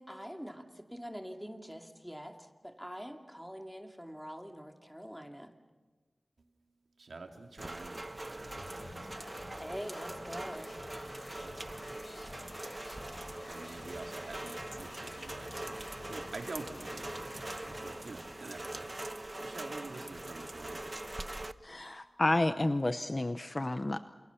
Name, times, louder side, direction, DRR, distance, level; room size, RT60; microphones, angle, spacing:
voice 1, 0.0-5.5 9.6-10.7, equal, ahead, 4 dB, 2.5 m, -44 dB
voice 2, 7.0-9.6 11.3-12.1 13.4-15.8 16.1-19.1 19.4-20.9, right 3 dB, 90° right, 4 dB, 2.8 m, -47 dB
Rain, 7.6-21.5, right 1 dB, 30° right, 1.0 m, -43 dB
sound 1, 8.4-18.1, left 2 dB, 60° left, 4.2 m, -50 dB
voice 3, 21.6-24.0, left 2 dB, 35° left, 10 dB, 0.8 m, -30 dB
28.0 x 28.0 x 7.1 m, 1.3 s
wide cardioid pair, 80°, 0 cm